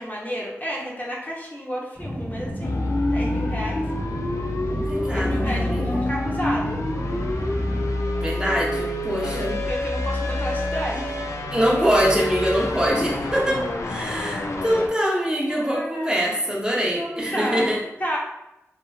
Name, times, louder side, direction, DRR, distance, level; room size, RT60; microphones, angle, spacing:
voice 1, 0.0-2.8 3.1-3.8 5.1-6.8 8.7-8.8 9.1-11.2 15.5-16.1 17.0-17.7 18.0-18.2, equal, 30° left, -3 dB, 0.7 m, -31 dB
sound 1, 2.0-7.9, equal, 5° left, 1.2 m, -32 dB
sound 2, 2.6-14.9, left 1 dB, 70° left, 0.4 m, -27 dB
voice 2, 4.7-6.1 8.2-9.6 11.5-17.8, equal, 15° right, -4 dB, 0.7 m, -24 dB
2.8 x 2.5 x 2.3 m, 0.92 s
cardioid pair, 40°, 5 cm